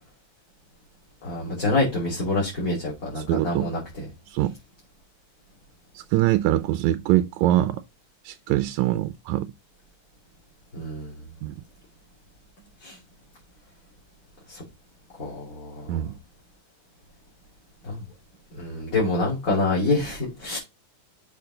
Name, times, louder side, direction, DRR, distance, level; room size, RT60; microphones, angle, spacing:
voice 1, 1.2-4.0 10.7-11.1 12.8-13.0 14.5-14.6 15.2-16.0 17.8-18.0 18.5-20.6, left 2 dB, 30° left, 2.8 m, -26 dB
voice 2, 3.2-3.7 4.3-4.6 6.0-7.8 8.2-9.5 11.4-11.6 15.9-16.2, right 14 dB, 80° right, 1.8 m, -23 dB
6.9 x 5.1 x 3.8 m
omnidirectional pair, 3.5 m